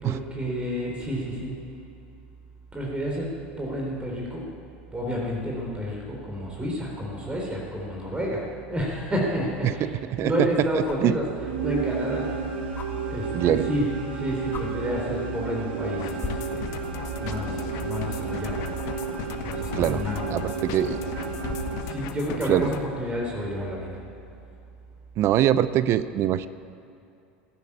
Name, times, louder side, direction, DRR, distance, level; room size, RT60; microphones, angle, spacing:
voice 1, 0.0-1.5 2.7-3.3 3.6-4.4 4.9-8.4 8.7-11.2 11.6-12.3 12.6-12.7 13.1-13.8 14.1-16.7 17.2-18.7 19.1-20.7 21.6-24.0, equal, 20° right, -2 dB, 3.8 m, -30 dB
sound 1, 8.6-8.7 10.8-11.1 12.7-12.9 14.0-14.1 14.5-14.7 15.6-15.8 16.2-21.9 23.5-23.6, left 6 dB, 35° left, 1.4 m, -40 dB
voice 2, 9.6-10.3 10.7-11.2 13.3-13.7 19.7-20.0 20.3-21.0 22.5-22.7 25.2-26.5, right 12 dB, 45° right, 15 dB, 0.5 m, -23 dB
sound 2, 11.2-22.5, right 5 dB, 70° right, 1.7 m, -32 dB
sound 3, 16.0-22.8, left 9 dB, 55° left, 1.1 m, -37 dB
15.0 x 9.7 x 8.5 m, 2.7 s
hypercardioid pair, 80°, 6 cm